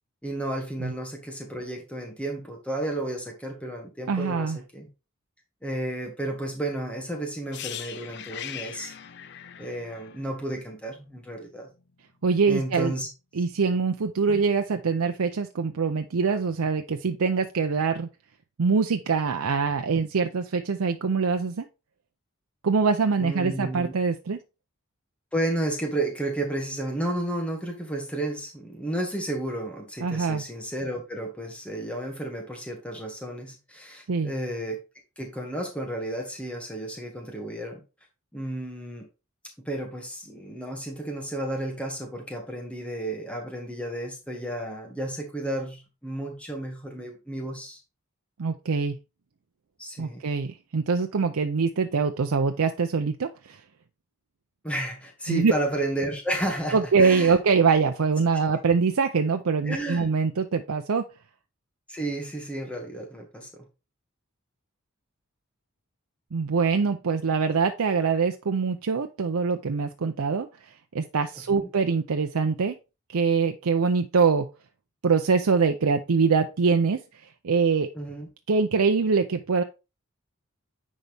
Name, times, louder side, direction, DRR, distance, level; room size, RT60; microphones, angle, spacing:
voice 1, 0.2-4.9 5.6-8.9 9.6-11.7 12.5-13.1 14.3-14.4 23.2-23.9 25.3-34.8 35.2-37.8 38.3-39.1 39.7-47.8 49.8-50.2 54.6-57.4 59.7-60.1 61.9-63.7 71.5-71.7 77.9-78.3, right 1 dB, 5° left, 1 dB, 1.8 m, -32 dB
voice 2, 4.1-4.6 12.2-12.9 13.3-18.1 18.6-21.6 22.6-24.4 30.0-30.4 34.1-34.3 48.4-49.0 50.0-53.6 55.3-55.5 56.7-61.0 66.3-72.8 73.1-74.5 75.0-77.9 78.5-79.6, right 5 dB, 85° right, 6 dB, 0.6 m, -24 dB
sound 1, 7.5-11.4 11.6-11.8, left 11 dB, 50° left, 0.5 m, -40 dB
10.0 x 4.1 x 3.4 m, 0.28 s
head